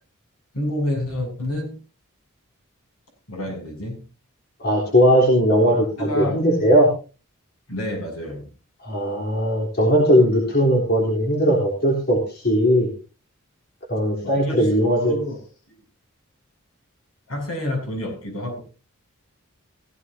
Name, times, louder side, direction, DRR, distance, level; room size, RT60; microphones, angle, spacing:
voice 1, 0.5-1.7 3.3-4.0 6.0-6.4 7.7-8.4 14.2-14.7 15.0-15.4 17.3-18.6, left 1 dB, 80° left, 2 dB, 7.6 m, -28 dB
voice 2, 4.6-6.9 8.8-12.9 13.9-15.2, equal, 50° left, -2 dB, 3.6 m, -18 dB
16.0 x 16.0 x 2.8 m, 0.33 s
head